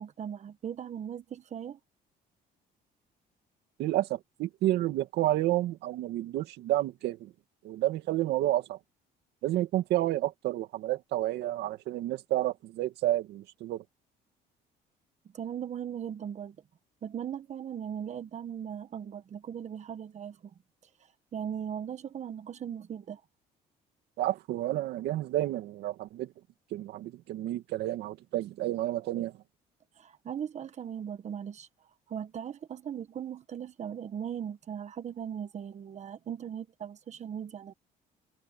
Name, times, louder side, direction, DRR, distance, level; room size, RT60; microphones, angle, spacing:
voice 1, 0.0-1.8 15.3-16.6 17.0-20.4 21.3-23.2 30.0-31.7 32.1-37.7, right 8 dB, 45° right, 1.2 m, -38 dB
voice 2, 3.8-7.3 7.6-8.8 9.4-13.8 24.2-26.3 26.7-29.3, right 15 dB, 80° right, 2.3 m, -30 dB
cardioid pair, 110°, 17 cm